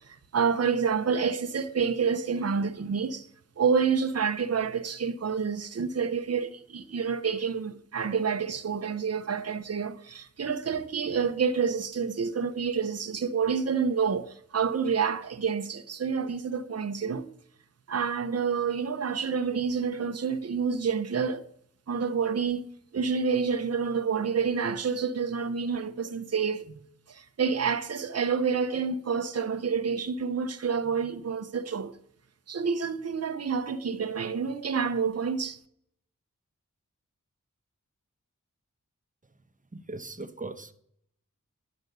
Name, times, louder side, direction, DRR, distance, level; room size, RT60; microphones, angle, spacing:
voice 1, 0.1-3.3 3.6-17.3 17.9-21.4 21.9-22.7 22.9-31.9 32.5-35.6, right 6 dB, 50° right, 0.7 m, -28 dB
voice 2, 39.7-40.7, right 3 dB, 25° right, 0.9 m, -39 dB
10.5 x 5.2 x 6.6 m
wide cardioid pair, 55°, 32 cm